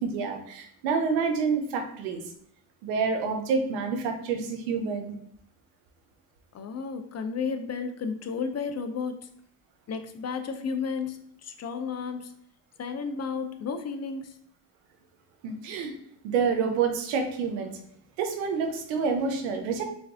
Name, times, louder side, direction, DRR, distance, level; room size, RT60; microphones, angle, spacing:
voice 1, 0.0-2.3 2.8-5.1 15.4-15.9 16.2-17.7 18.2-19.8, right 5 dB, 85° right, 5 dB, 0.9 m, -28 dB
voice 2, 6.5-9.3 9.9-12.3 12.8-14.4, left 5 dB, 35° left, 8 dB, 0.6 m, -33 dB
4.7 x 3.4 x 2.7 m, 0.68 s
supercardioid pair, 75°, 49 cm